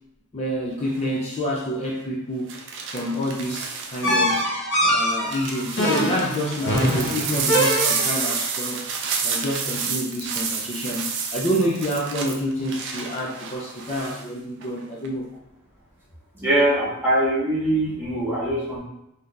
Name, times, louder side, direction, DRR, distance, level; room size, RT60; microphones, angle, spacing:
voice 1, 0.3-2.5 2.9-4.4 4.8-8.9 9.2-15.3, equal, 30° left, -3 dB, 0.4 m, -28 dB
sound 1, 0.9-1.2 2.5-4.4 5.0-14.2 14.6-15.1, right 5 dB, 60° right, 0.4 m, -30 dB
sound 2, 4.0-8.3, equal, 60° left, 0.7 m, -23 dB
voice 2, 16.4-18.8, right 1 dB, 10° right, -9 dB, 1.2 m, -22 dB
3.6 x 2.7 x 2.4 m, 0.84 s
head